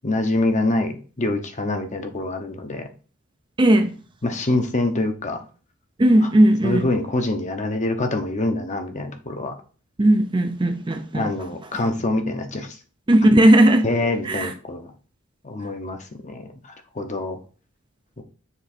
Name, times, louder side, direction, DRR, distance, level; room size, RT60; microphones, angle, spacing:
voice 1, 0.0-2.9 4.2-5.4 6.6-9.5 11.1-12.8 13.8-14.9 15.4-17.4 18.2-18.3, left 2 dB, 35° left, 0.9 m, -25 dB
voice 2, 3.6-4.0 6.0-6.9 10.0-11.3 13.1-13.9 14.2-14.5, right 1 dB, 20° right, 0.5 m, -16 dB
7.1 x 3.2 x 4.3 m
head